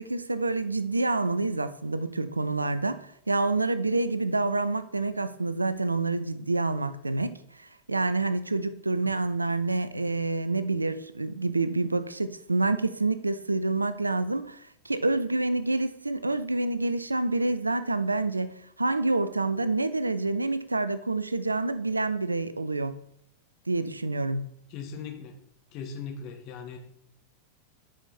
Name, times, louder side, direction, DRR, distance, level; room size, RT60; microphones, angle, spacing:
voice 1, 0.0-23.0 23.7-24.5, right 2 dB, 80° right, 0.5 m, -28 dB
voice 2, 24.7-25.4 25.7-26.8, left 6 dB, 40° left, 1.5 m, -39 dB
10.0 x 5.0 x 4.3 m
figure-of-eight pair, 90°, 0 cm